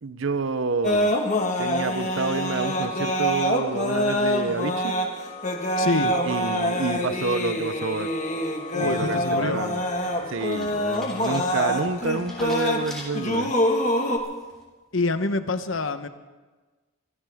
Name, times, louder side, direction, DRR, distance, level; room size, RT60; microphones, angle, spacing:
voice 1, 0.0-1.1 1.6-4.9 6.2-8.1 8.8-9.8 10.3-13.5, right 4 dB, 55° right, 14 dB, 0.6 m, -28 dB
sound 1, 0.8-14.2, equal, 35° left, 1.6 m, -25 dB
voice 2, 5.8-6.2 8.7-9.6 14.9-16.1, left 3 dB, 60° left, 10 dB, 0.9 m, -26 dB
sound 2, 9.5-13.8 14.2-14.6, left 1 dB, ahead, 3.6 m, -44 dB
24.5 x 15.5 x 3.6 m, 1.3 s
head